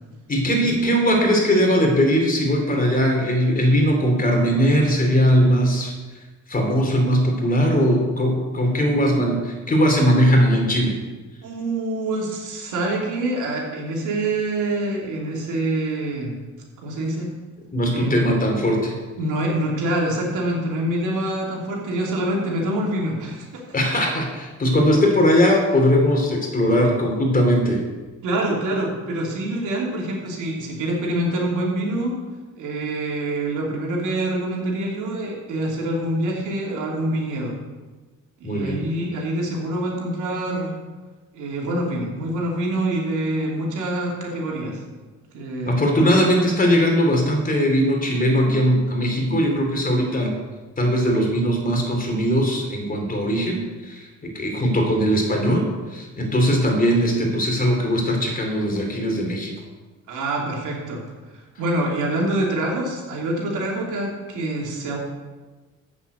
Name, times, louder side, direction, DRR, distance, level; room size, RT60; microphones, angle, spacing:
voice 1, 0.3-6.0 6.5-11.0 17.7-18.9 23.7-27.8 38.4-38.8 45.7-50.3 50.8-59.5, equal, 30° left, 1 dB, 3.0 m, -20 dB
voice 2, 11.4-16.4 16.8-17.3 17.9-18.2 19.2-23.6 28.2-32.1 32.5-37.5 38.4-40.8 41.3-44.8 45.3-46.1 60.1-61.0 61.6-65.0, right 1 dB, 85° right, -1 dB, 2.9 m, -25 dB
8.3 x 7.2 x 7.9 m, 1.3 s
cardioid pair, 90°, 30 cm